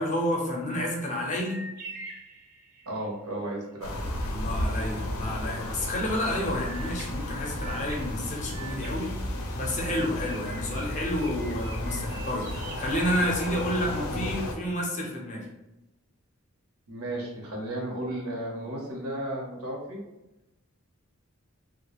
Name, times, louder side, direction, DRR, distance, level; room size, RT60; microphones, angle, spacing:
voice 1, 0.0-1.6 4.3-9.1 9.5-15.5, left 1 dB, 35° left, -1 dB, 0.5 m, -30 dB
sound 1, 1.4-3.2 6.6-9.8 10.2-13.7, right 3 dB, 45° right, 0.5 m, -46 dB
voice 2, 2.9-4.1 16.9-20.0, right 1 dB, 90° right, -1 dB, 0.8 m, -34 dB
sound 2, 3.8-14.5, left 1 dB, 85° left, 0.5 m, -33 dB
2.3 x 2.1 x 2.9 m, 0.99 s
head